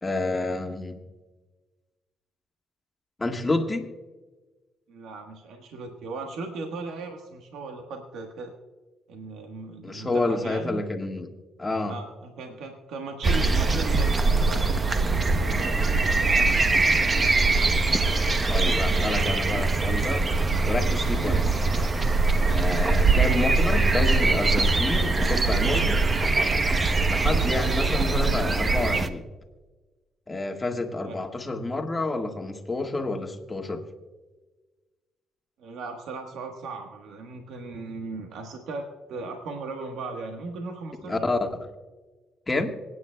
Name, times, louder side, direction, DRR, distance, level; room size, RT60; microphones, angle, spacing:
voice 1, 0.0-1.0 3.2-3.9 9.8-11.3 11.6-12.0 18.5-20.3 20.6-21.7 22.5-26.0 27.1-29.2 30.3-33.8 41.0-41.5 42.5-42.7, left 2 dB, 20° left, 2 dB, 1.7 m, -29 dB
voice 2, 4.9-8.5 9.1-10.8 11.8-16.9 22.3-23.0 31.0-31.2 35.6-41.3, right 3 dB, 85° right, 3 dB, 1.4 m, -38 dB
sound 1, 13.2-29.1, right 3 dB, 30° right, 0.9 m, -22 dB
26.0 x 9.4 x 2.3 m, 1.3 s
cardioid pair, 90°, 0 cm